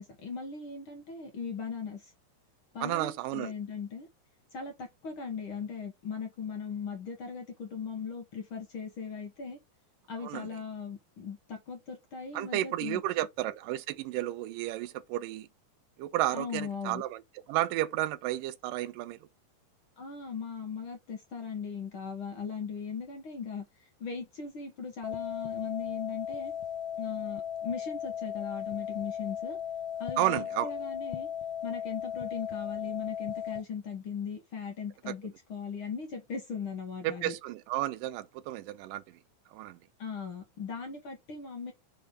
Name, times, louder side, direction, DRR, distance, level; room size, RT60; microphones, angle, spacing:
voice 1, 0.0-2.1 2.7-4.1 4.5-9.6 10.1-13.0 16.3-17.0 20.0-26.5 27.0-29.6 30.0-31.3 31.6-37.3 40.0-41.7, left 5 dB, 60° left, 1.3 m, -39 dB
voice 2, 2.8-3.5 10.2-10.5 12.3-15.5 16.0-17.2 17.5-19.2 30.2-30.7 37.0-39.0 39.5-39.8, right 15 dB, 85° right, 2.3 m, -32 dB
sound 1, 25.0-33.6, left 9 dB, 80° left, 2.2 m, -36 dB
6.4 x 3.4 x 5.1 m
omnidirectional pair, 3.9 m